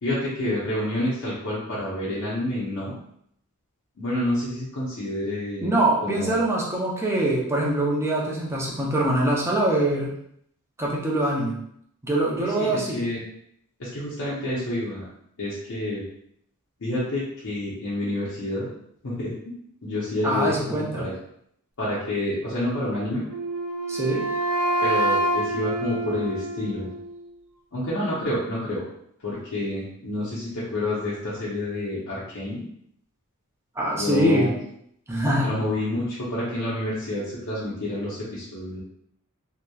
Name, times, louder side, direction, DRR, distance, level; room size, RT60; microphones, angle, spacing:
voice 1, 0.0-2.9 4.0-5.7 6.0-6.3 12.4-13.2 13.8-15.0 15.4-16.0 16.8-18.7 19.0-19.5 19.8-21.1 21.8-23.2 24.8-26.9 27.7-28.8 29.2-32.6 33.9-34.5 35.4-38.8, left 1 dB, 65° left, -8 dB, 0.6 m, -28 dB
voice 2, 5.6-10.1 10.8-11.6 12.0-13.0 20.2-21.1 23.9-24.2 33.8-34.5 35.1-35.5, right 1 dB, 10° right, -3 dB, 0.5 m, -23 dB
Wind instrument woodwind instrument, 23.3-27.2, right 1 dB, 70° right, 0.4 m, -26 dB
2.8 x 2.1 x 2.2 m, 0.71 s
head